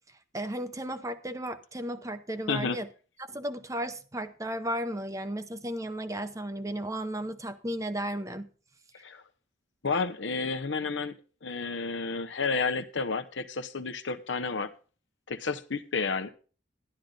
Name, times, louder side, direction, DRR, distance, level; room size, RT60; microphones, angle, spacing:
voice 1, 0.3-2.9 3.2-8.5, right 1 dB, 20° right, 0.7 m, -34 dB
voice 2, 9.8-14.7 15.3-16.3, left 4 dB, 80° left, 0.9 m, -31 dB
11.5 x 11.5 x 3.9 m
head